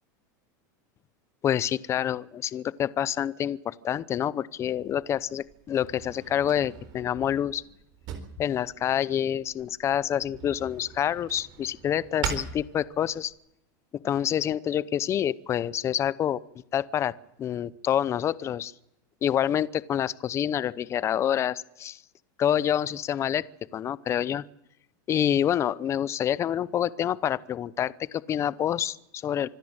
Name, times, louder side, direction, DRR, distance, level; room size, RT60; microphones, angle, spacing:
voice 1, 1.4-7.6 8.4-13.3 14.0-16.4 16.7-17.1 17.4-18.7 19.2-22.0 22.4-23.4 23.7-24.4 25.1-29.5, left 10 dB, 25° left, 18 dB, 0.7 m, -27 dB
Drawer open or close, 4.6-13.3, right 8 dB, 45° right, 4.1 m, -41 dB
25.5 x 13.0 x 8.9 m, 0.81 s
supercardioid pair, 140°, 10 cm